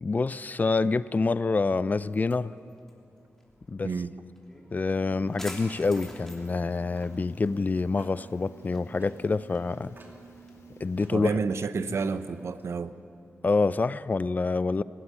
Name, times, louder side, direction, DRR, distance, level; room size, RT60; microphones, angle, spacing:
voice 1, 0.0-2.5 3.7-3.9 4.7-9.9 10.8-11.3 13.4-14.8, left 3 dB, 35° left, 17 dB, 0.4 m, -27 dB
sound 1, 2.0-11.7, left 1 dB, 10° left, 3.2 m, -50 dB
voice 2, 3.8-4.2 11.1-13.0, right 5 dB, 65° right, 12 dB, 0.8 m, -30 dB
sound 2, 4.8-11.1, right 4 dB, 90° left, 2.1 m, -51 dB
Clock, 5.4-12.8, right 2 dB, 45° right, 2.6 m, -57 dB
20.0 x 17.5 x 9.6 m, 2.6 s
wide cardioid pair, 115°, 5 cm